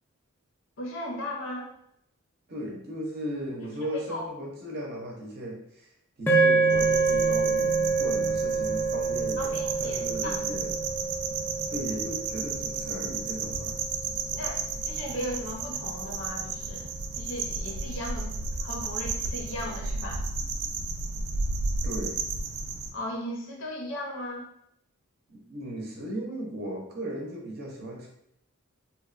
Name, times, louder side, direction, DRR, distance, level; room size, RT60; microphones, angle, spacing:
voice 1, 0.8-1.7 4.1-4.3 9.4-10.4 14.3-16.9 17.1-18.3 18.6-20.2 22.9-24.5, left 1 dB, 60° left, -1 dB, 0.6 m, -36 dB
voice 2, 2.5-5.9 6.2-10.7 11.7-13.8 21.8-22.2 25.3-28.1, equal, 45° right, -2 dB, 0.6 m, -36 dB
sound 1, 6.3-14.6, right 4 dB, 10° left, 0.4 m, -27 dB
sound 2, 6.7-22.9, right 4 dB, 80° right, 0.3 m, -33 dB
2.8 x 2.1 x 2.4 m, 0.76 s
head